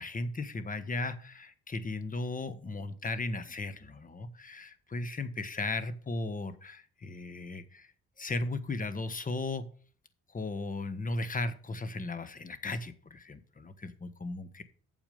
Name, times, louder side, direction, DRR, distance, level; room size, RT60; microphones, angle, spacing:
voice 1, 0.0-7.9 8.2-9.7 10.3-14.6, left 2 dB, 25° left, 12 dB, 1.4 m, -36 dB
8.9 x 7.2 x 5.2 m, 0.43 s
cardioid pair, 90°, 30 cm